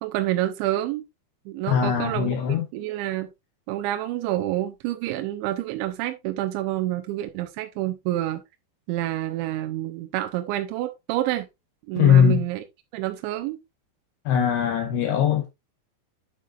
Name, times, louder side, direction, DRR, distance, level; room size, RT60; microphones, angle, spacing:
voice 1, 0.0-1.1 1.5-2.4 2.7-3.3 3.7-8.4 8.9-11.5 11.9-12.6 12.9-13.6, right 14 dB, 80° right, 2.8 m, -28 dB
voice 2, 1.7-2.6 12.0-12.4 14.3-15.5, left 8 dB, 80° left, 2.5 m, -20 dB
9.1 x 7.5 x 2.4 m
omnidirectional pair, 5.7 m